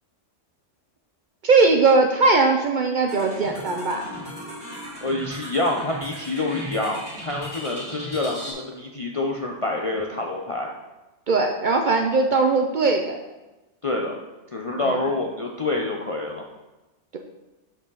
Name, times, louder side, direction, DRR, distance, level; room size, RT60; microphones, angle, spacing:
voice 1, 1.4-4.0 11.3-13.2 14.9-15.0, right 3 dB, 55° right, 3 dB, 0.5 m, -19 dB
sound 1, 3.1-8.5, equal, 20° right, 2.4 m, -37 dB
voice 2, 5.0-10.7 13.8-14.2 14.5-16.4, left 2 dB, 45° left, 0 dB, 0.4 m, -27 dB
6.4 x 6.0 x 4.0 m, 1.1 s
omnidirectional pair, 1.2 m